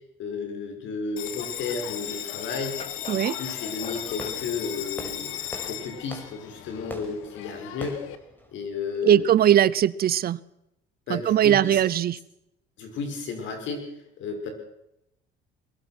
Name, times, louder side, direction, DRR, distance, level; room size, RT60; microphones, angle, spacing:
voice 1, 0.2-2.8 3.1-5.3 5.7-8.0 8.5-9.3 11.1-11.8 12.8-13.9 14.2-14.5, left 4 dB, 65° left, 4 dB, 6.5 m, -33 dB
Bell, 1.2-8.2, left 12 dB, 90° left, 1.7 m, -36 dB
sound 1, 2.8-4.4, left 6 dB, 30° left, 1.5 m, -43 dB
Fireworks, 3.9-9.5, equal, 10° left, 4.9 m, -44 dB
voice 2, 9.0-10.4 11.1-12.2, right 11 dB, 50° right, 20 dB, 0.7 m, -20 dB
22.5 x 22.0 x 6.2 m, 0.83 s
cardioid pair, 115°, 20 cm